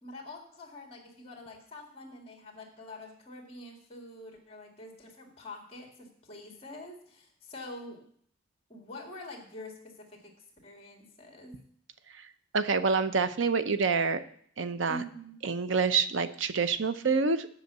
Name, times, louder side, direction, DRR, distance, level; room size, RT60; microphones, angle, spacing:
voice 1, 0.0-8.1 8.7-11.6 14.9-15.3, left 1 dB, 30° left, 1 dB, 2.0 m, -46 dB
voice 2, 12.5-14.2 14.6-15.0 15.4-17.5, right 4 dB, 65° right, 11 dB, 0.6 m, -27 dB
8.1 x 5.8 x 7.9 m, 0.62 s
head